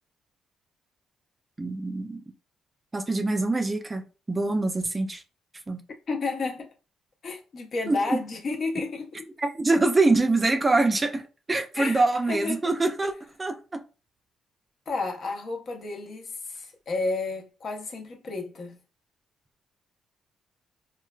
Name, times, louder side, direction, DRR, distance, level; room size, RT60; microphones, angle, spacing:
voice 1, 1.6-2.2 2.9-5.2 5.7-5.8 7.9-8.2 9.4-11.2 11.5-13.1 13.4-13.8, right 2 dB, 20° right, 0.4 m, -24 dB
voice 2, 6.1-6.7 7.2-9.3 11.8-12.0 12.3-12.6 14.9-18.8, left 3 dB, 55° left, 0.7 m, -31 dB
3.1 x 2.2 x 2.3 m
cardioid pair, 90°, 0 cm